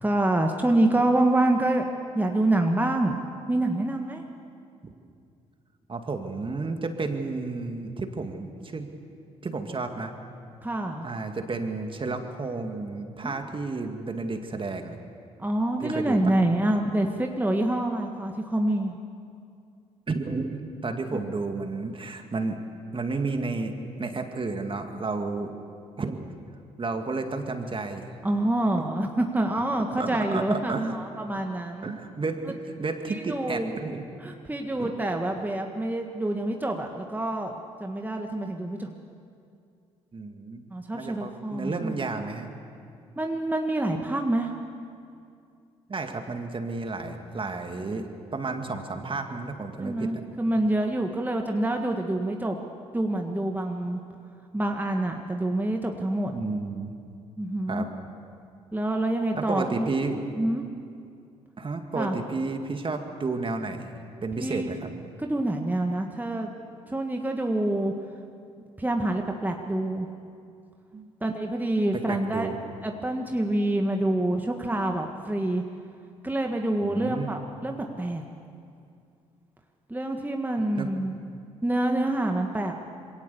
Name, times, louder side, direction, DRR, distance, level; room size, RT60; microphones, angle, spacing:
voice 1, 0.0-1.9 2.1-3.2 3.5-4.2 10.6-11.1 13.2-13.3 15.4-19.0 21.1-21.3 28.2-31.9 33.1-33.8 34.2-37.5 37.8-38.9 40.7-42.1 43.2-44.5 49.8-52.6 52.9-54.0 54.5-56.3 57.4-57.9 58.7-60.0 60.4-60.7 61.9-62.2 64.4-64.7 65.2-66.5 66.9-67.9 68.8-70.1 71.2-72.5 72.8-75.6 76.2-78.2 79.9-81.2 81.6-82.7, right 1 dB, 10° right, 3 dB, 1.7 m, -26 dB
voice 2, 5.9-8.9 9.4-10.1 11.0-15.0 15.8-16.2 20.1-22.6 22.9-25.5 26.0-26.2 26.8-28.1 30.0-31.0 31.3-31.4 31.8-34.0 34.8-34.9 40.1-40.6 40.9-42.5 45.9-50.1 56.3-56.9 57.7-57.9 59.3-60.2 61.6-64.9 70.9-71.1 71.9-72.6 76.8-77.3 80.8-80.9, right 3 dB, 35° right, 5 dB, 2.2 m, -32 dB
22.0 x 17.5 x 7.1 m, 2.4 s
hypercardioid pair, 50°, 15 cm